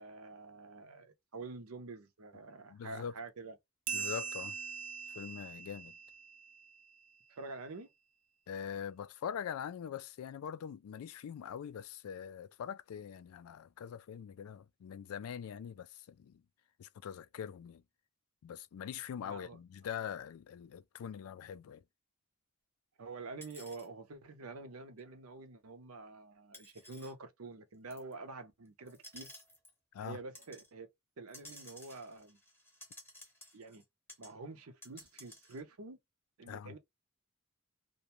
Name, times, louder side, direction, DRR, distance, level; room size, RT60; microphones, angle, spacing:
voice 1, 0.0-3.5 7.3-7.9 19.2-19.6 23.0-29.3 30.0-30.9 31.2-32.4 33.5-33.8 34.2-36.0 36.4-36.8, right 3 dB, 75° right, 0.6 m, -47 dB
voice 2, 2.7-3.1 3.9-4.5 5.1-6.0 8.5-16.4 16.8-17.8 18.4-21.8 29.9-30.2 36.5-36.8, left 8 dB, 75° left, 0.3 m, -43 dB
sound 1, 3.9-6.9, right 6 dB, 35° right, 0.4 m, -41 dB
sound 2, 23.4-23.9 25.0-25.1 26.5-27.1 27.9-28.1 28.9-29.7 30.3-30.7 31.3-33.8 34.1-34.3 34.6-35.6, left 1 dB, 10° left, 0.9 m, -54 dB
2.5 x 2.2 x 2.9 m
head